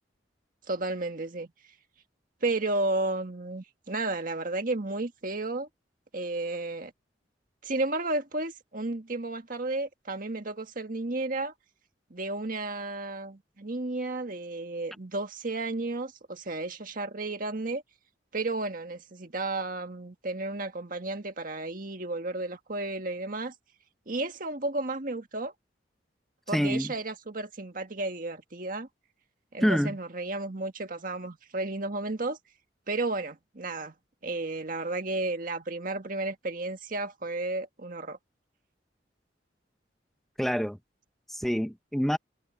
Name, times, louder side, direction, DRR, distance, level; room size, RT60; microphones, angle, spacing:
voice 1, 0.7-1.5 2.4-5.7 6.1-6.9 7.6-11.5 12.1-17.8 18.3-23.5 24.1-25.5 26.5-28.9 29.5-32.4 32.9-33.9 34.2-38.2, right 2 dB, 50° right, 1.7 m, -33 dB
voice 2, 26.5-26.9 29.6-30.0 40.4-40.8 41.3-42.2, equal, ahead, 0.9 m, -26 dB
head